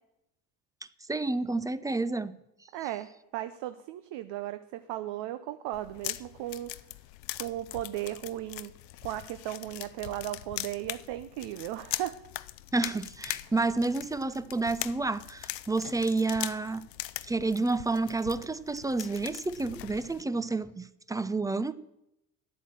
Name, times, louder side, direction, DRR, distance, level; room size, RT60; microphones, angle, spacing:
voice 1, 1.1-2.3 12.7-16.9 17.2-21.7, right 3 dB, 10° right, 0.3 m, -30 dB
voice 2, 2.7-6.7 7.4-8.7 9.0-12.2, right 14 dB, 60° right, 0.7 m, -36 dB
sound 1, 5.7-20.2, left 17 dB, 90° left, 0.5 m, -41 dB
10.5 x 8.1 x 7.4 m
hypercardioid pair, 65°, 48 cm